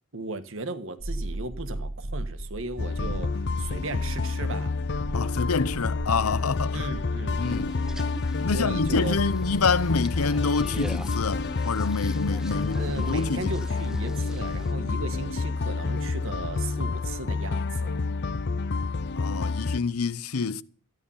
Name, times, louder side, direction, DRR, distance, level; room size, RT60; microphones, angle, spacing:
voice 1, 0.1-4.8 6.7-7.7 8.5-9.2 12.5-18.0, right 2 dB, 60° right, 1.5 m, -36 dB
sound 1, 1.0-16.9, right 1 dB, 40° right, 1.3 m, -40 dB
sound 2, 2.8-19.8, left 4 dB, 50° left, 0.5 m, -29 dB
voice 2, 5.1-6.9 7.4-7.7 8.4-13.5 19.1-20.6, left 4 dB, 80° left, 0.8 m, -27 dB
sound 3, 7.3-14.7, right 1 dB, 5° right, 0.7 m, -44 dB
14.0 x 10.5 x 5.6 m
head